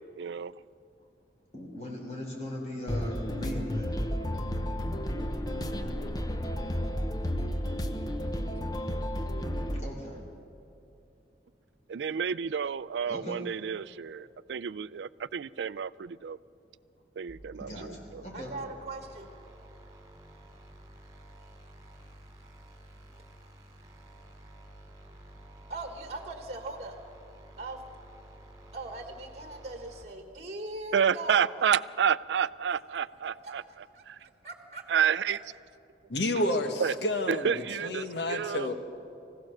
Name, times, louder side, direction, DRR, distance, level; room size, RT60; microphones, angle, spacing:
voice 1, 0.2-0.5 11.9-16.4 17.2-18.2 30.9-33.6 34.1-34.2 34.9-35.4 36.8-36.9 37.3-38.7, right 7 dB, 80° right, 18 dB, 0.4 m, -30 dB
voice 2, 1.5-4.0 8.2-8.3 9.7-10.2 13.1-13.4 17.4-18.6, left 1 dB, 40° left, -1 dB, 3.7 m, -40 dB
sound 1, 2.9-9.8, equal, 20° left, 0.8 m, -32 dB
sound 2, 17.3-30.0, right 1 dB, 20° right, 2.6 m, -52 dB
voice 3, 18.3-19.3 25.7-27.0 27.6-27.8 28.7-31.7 33.4-35.4, right 2 dB, 40° right, 5 dB, 1.4 m, -40 dB
voice 4, 36.1-37.5 37.8-38.7, left 1 dB, 70° left, 6 dB, 1.5 m, -29 dB
24.5 x 16.0 x 6.6 m, 2.6 s
head